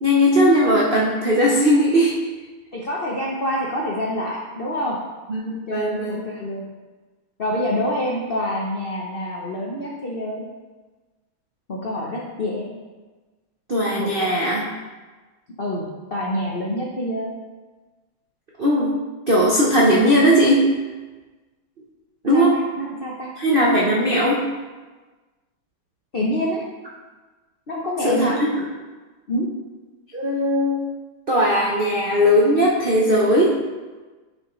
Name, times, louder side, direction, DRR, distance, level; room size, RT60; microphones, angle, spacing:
voice 1, 0.0-2.1 5.3-6.2 13.7-14.6 18.6-18.9 19.3-20.7 22.2-22.6 23.4-24.4 28.0-28.6 30.1-30.8 31.3-33.6, equal, 75° right, -4 dB, 0.5 m, -18 dB
voice 2, 2.7-5.0 5.7-6.6 7.4-10.5 11.7-12.7 14.0-14.4 15.6-17.3 22.3-23.3 26.1-26.6 27.7-28.4 29.3-29.5, left 1 dB, 80° left, -3 dB, 0.5 m, -26 dB
9.8 x 5.4 x 3.1 m, 1.3 s
omnidirectional pair, 2.4 m